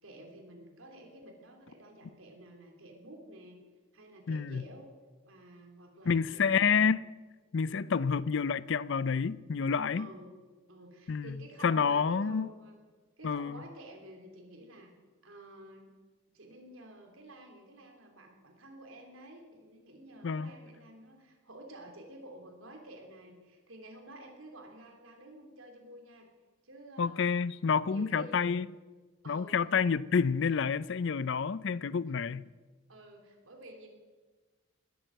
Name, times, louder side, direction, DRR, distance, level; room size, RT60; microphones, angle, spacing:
voice 1, 0.0-3.6 3.9-4.9 5.2-6.9 7.6-7.9 9.9-10.3 10.7-12.7 13.2-14.9 15.2-15.9 16.3-26.3 26.6-27.3 27.9-28.4 29.2-29.6 30.4-30.5 32.9-33.9, right 1 dB, 85° right, 3.5 m, -51 dB
voice 2, 4.3-4.6 6.1-7.1 7.5-10.1 11.1-11.4 11.6-12.5 13.2-13.6 20.2-20.5 27.0-28.7 29.3-32.5, left 6 dB, 60° left, 0.5 m, -29 dB
20.0 x 8.8 x 7.9 m
head